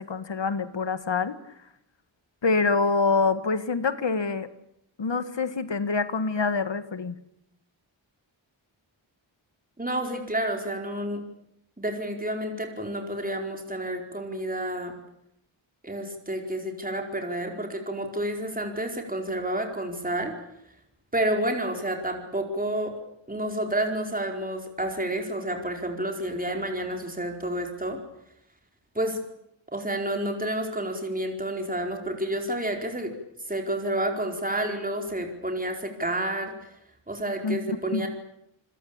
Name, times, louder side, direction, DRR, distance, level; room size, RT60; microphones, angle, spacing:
voice 1, 0.0-1.4 2.4-4.5 5.0-7.2 37.4-37.6 37.9-38.1, left 4 dB, 60° left, 12 dB, 1.8 m, -26 dB
voice 2, 9.8-11.2 11.8-14.9 15.8-20.3 21.1-22.9 23.3-28.0 28.9-29.2 29.7-33.1 33.5-36.7 37.1-38.1, right 1 dB, 15° right, 3 dB, 4.6 m, -30 dB
27.5 x 21.0 x 8.9 m, 0.77 s
wide cardioid pair, 70°, 48 cm